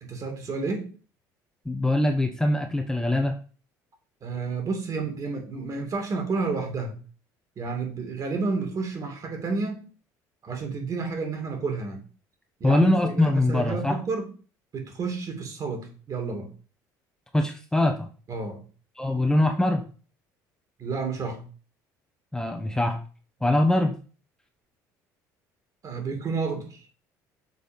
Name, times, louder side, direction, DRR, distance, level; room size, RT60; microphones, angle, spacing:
voice 1, 0.0-0.9 4.2-7.0 7.6-9.8 10.4-12.0 12.6-14.3 14.7-16.5 18.3-18.6 20.8-21.4 25.8-26.8, right 4 dB, 45° right, 2.7 m, -30 dB
voice 2, 1.6-3.3 12.6-14.0 17.3-18.1 19.0-19.8 22.3-23.0 23.4-23.9, left 1 dB, 10° left, 1.1 m, -23 dB
6.7 x 3.8 x 5.5 m
supercardioid pair, 80°, 8 cm